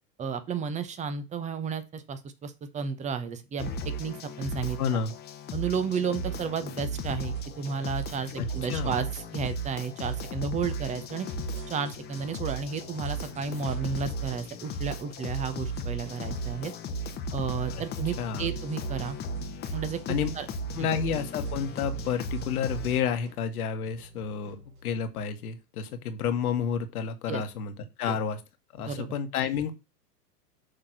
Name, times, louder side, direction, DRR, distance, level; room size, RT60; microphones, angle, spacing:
voice 1, 0.2-4.8 5.5-9.1 9.3-11.3 11.7-16.7 17.3-19.2 19.7-20.0 20.4-20.5 20.8-20.9 27.3-27.4 28.1-28.2 28.8-29.1, right 6 dB, 15° right, 11 dB, 0.8 m, -32 dB
sound 1, 3.6-23.0, right 1 dB, 20° left, 1.1 m, -35 dB
voice 2, 4.8-5.1 8.3-8.9 17.7-18.5 20.1-20.3 20.7-27.7 28.0-28.4 28.7-29.7, left 7 dB, 60° left, 7 dB, 1.7 m, -30 dB
sound 2, 7.1-9.7 10.0-14.6 14.8-25.1, right 3 dB, 55° right, 2.9 m, -52 dB
6.5 x 3.7 x 6.0 m, 0.26 s
hypercardioid pair, 120°, 50 cm